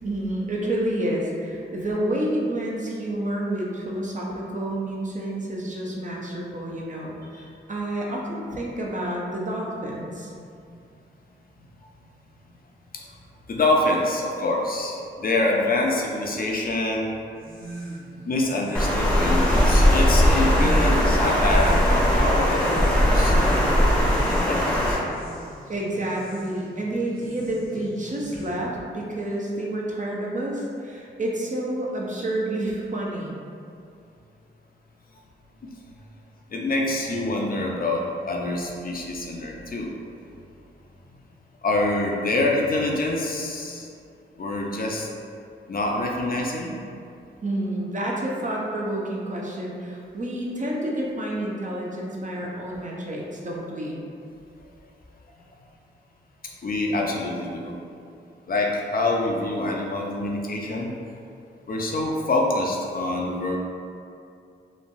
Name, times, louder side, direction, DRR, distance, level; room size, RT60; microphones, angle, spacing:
voice 1, 0.0-10.3 25.7-33.4 47.4-54.1, right 1 dB, 40° right, -3 dB, 0.6 m, -29 dB
voice 2, 13.5-17.3 18.2-25.0 36.5-39.9 41.6-43.9 44.4-45.1 45.7-46.8 56.6-57.8 58.5-60.9 61.7-63.6, left 2 dB, 45° left, -1 dB, 0.5 m, -26 dB
sound 1, 17.3-28.8, right 1 dB, 80° right, 1.1 m, -41 dB
Water, 18.7-24.9, equal, 5° left, 0.7 m, -19 dB
3.1 x 2.2 x 2.5 m, 2.4 s
supercardioid pair, 45°, 21 cm